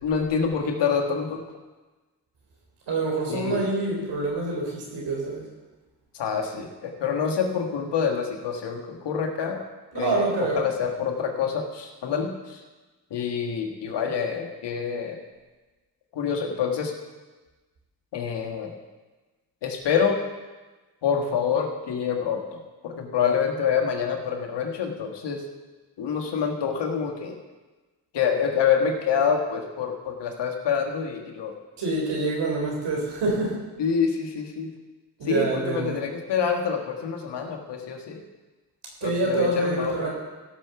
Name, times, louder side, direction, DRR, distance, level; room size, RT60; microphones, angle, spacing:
voice 1, 0.0-1.4 3.3-3.7 6.1-9.6 9.9-10.3 10.5-12.6 13.1-15.2 16.1-16.9 18.1-18.8 19.6-20.2 21.0-25.4 26.0-27.4 28.1-31.6 33.8-34.7 35.2-38.2 39.0-40.1, left 6 dB, 85° left, 2 dB, 1.7 m, -26 dB
voice 2, 2.9-5.4 9.9-10.7 31.8-33.6 35.2-36.0 39.0-40.1, right 3 dB, 85° right, -1 dB, 4.0 m, -26 dB
15.5 x 6.0 x 6.9 m, 1.2 s
supercardioid pair, 50°, 41 cm